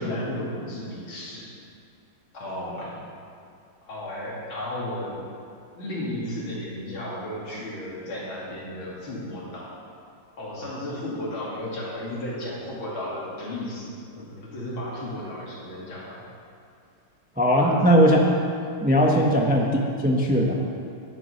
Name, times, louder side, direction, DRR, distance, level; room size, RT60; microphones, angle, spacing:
voice 1, 0.0-1.5 2.3-3.0 3.8-5.2 5.8-9.7 10.4-16.2 17.5-17.9 19.1-19.3, left 1 dB, 75° left, -5 dB, 3.4 m, -33 dB
voice 2, 17.4-18.2 18.8-20.6, equal, 10° right, 0 dB, 0.5 m, -19 dB
11.0 x 9.6 x 5.6 m, 2.4 s
omnidirectional pair, 2.2 m